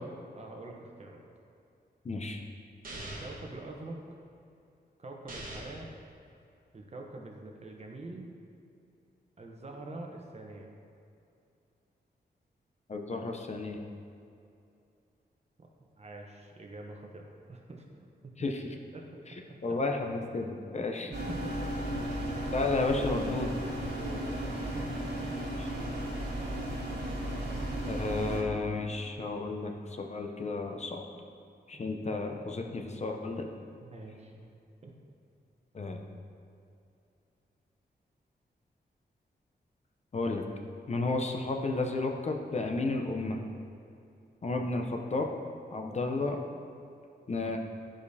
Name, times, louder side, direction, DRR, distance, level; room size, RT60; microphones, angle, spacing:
voice 1, 0.4-1.2 3.0-4.0 5.0-5.9 6.7-8.3 9.4-10.7 15.6-15.7 16.0-18.1 18.9-19.1 19.5-19.6 21.3-22.0 23.9-25.1 31.7-31.8 33.8-34.4 34.8-34.9, right 2 dB, 40° right, 1 dB, 0.9 m, -45 dB
voice 2, 2.0-2.4 12.9-13.8 18.4-18.7 19.6-21.1 22.5-23.5 25.6-25.7 27.9-31.1 31.7-33.5 35.7-36.1 40.1-40.4 40.9-43.4 44.4-45.3 45.7-46.4 47.3-47.6, left 3 dB, 40° left, 3 dB, 0.6 m, -32 dB
sound 1, 2.8-3.5 5.3-5.9, right 1 dB, 55° right, 1.2 m, -42 dB
sound 2, 21.1-28.4, right 1 dB, 80° right, 1.4 m, -35 dB
11.0 x 5.0 x 2.8 m, 2.6 s
wide cardioid pair, 105°, 17 cm